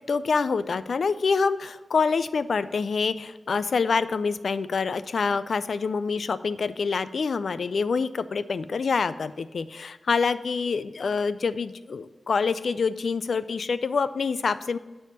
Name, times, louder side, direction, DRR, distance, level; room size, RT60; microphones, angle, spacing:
voice 1, 0.1-14.8, left 5 dB, 80° left, 14 dB, 0.3 m, -26 dB
9.2 x 3.5 x 7.0 m, 1.2 s
wide cardioid pair, 100°, 0 cm